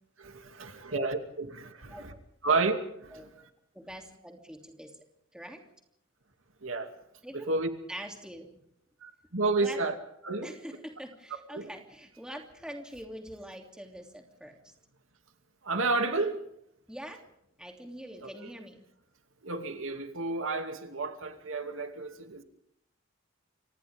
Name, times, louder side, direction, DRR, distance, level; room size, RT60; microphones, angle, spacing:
voice 1, 0.2-2.1 2.4-2.7 3.0-3.2 6.6-6.9 7.3-7.7 9.0-10.0 10.2-10.5 11.5-11.7 15.6-16.4 18.2-18.5 19.4-22.4, right 3 dB, 80° right, 2.6 m, -31 dB
voice 2, 3.7-4.9 5.3-5.6 7.2-7.6 7.9-8.6 9.6-9.8 10.4-14.7 16.9-17.2 17.6-18.8, equal, 5° right, 2.9 m, -44 dB
29.5 x 26.0 x 3.6 m
head